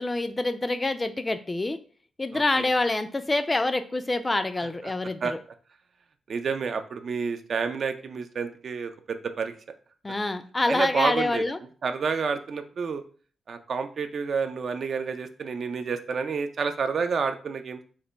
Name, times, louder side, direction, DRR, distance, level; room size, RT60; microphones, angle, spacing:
voice 1, 0.0-1.8 2.2-5.4 10.0-11.6, left 2 dB, 25° left, 10 dB, 0.3 m, -26 dB
voice 2, 2.3-2.7 5.2-5.3 6.3-9.5 10.7-11.4 11.8-13.0 13.5-17.8, right 5 dB, 60° right, 8 dB, 0.4 m, -29 dB
3.2 x 2.1 x 3.8 m, 0.43 s
cardioid pair, 80°, 0 cm